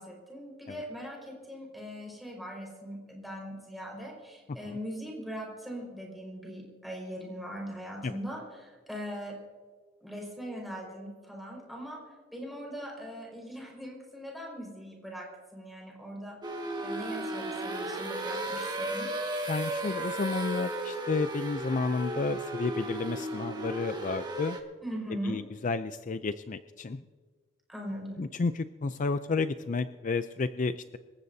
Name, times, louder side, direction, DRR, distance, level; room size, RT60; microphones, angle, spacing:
voice 1, 0.0-9.4 10.0-12.0 12.3-15.3 15.5-16.4 16.8-19.1 24.8-25.4 27.7-28.2, equal, ahead, -2 dB, 5.2 m, -40 dB
sound 1, 16.4-24.6, right 1 dB, 25° right, 1.6 m, -35 dB
voice 2, 19.5-24.6 25.2-27.0 28.2-31.0, left 4 dB, 40° left, 11 dB, 0.4 m, -31 dB
26.0 x 14.5 x 2.7 m, 1.5 s
head